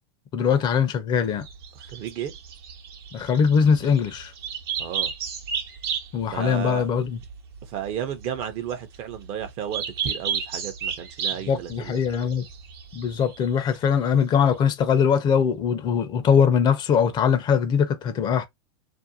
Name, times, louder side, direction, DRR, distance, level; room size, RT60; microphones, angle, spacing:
voice 1, 0.3-1.5 3.1-4.3 6.1-7.2 11.5-12.4 12.9-18.5, left 7 dB, 35° left, 0.6 m, -21 dB
sound 1, 1.3-14.2, right 7 dB, 70° right, 0.9 m, -33 dB
voice 2, 1.7-2.3 4.8-5.1 6.3-6.9 7.6-12.0, right 9 dB, 45° right, 0.7 m, -33 dB
2.6 x 2.2 x 2.6 m
hypercardioid pair, 100°, 13 cm